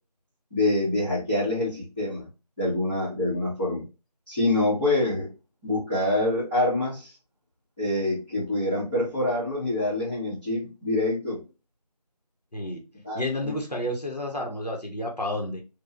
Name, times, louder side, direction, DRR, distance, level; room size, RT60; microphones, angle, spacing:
voice 1, 0.5-2.3 2.6-3.8 4.3-5.3 5.6-7.1 7.8-11.4 13.0-13.5, left 1 dB, 15° left, 1.5 m, -26 dB
voice 2, 12.5-12.8 13.1-15.6, left 1 dB, 75° left, 1.2 m, -30 dB
4.0 x 2.6 x 2.5 m
figure-of-eight pair, 175°, 21 cm